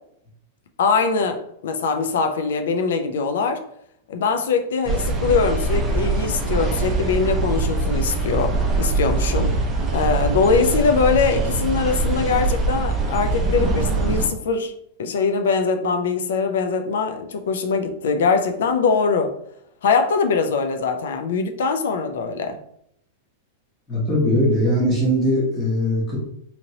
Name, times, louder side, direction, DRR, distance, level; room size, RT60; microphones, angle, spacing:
voice 1, 0.8-3.6 4.1-9.5 9.9-14.7 15.0-19.3 19.8-22.6, left 5 dB, 80° left, 6 dB, 0.4 m, -22 dB
sound 1, 4.8-14.3, right 3 dB, 15° right, 0.5 m, -23 dB
voice 2, 23.9-26.2, equal, 15° left, -5 dB, 0.7 m, -20 dB
2.8 x 2.8 x 2.7 m, 0.72 s
supercardioid pair, 175°, 0 cm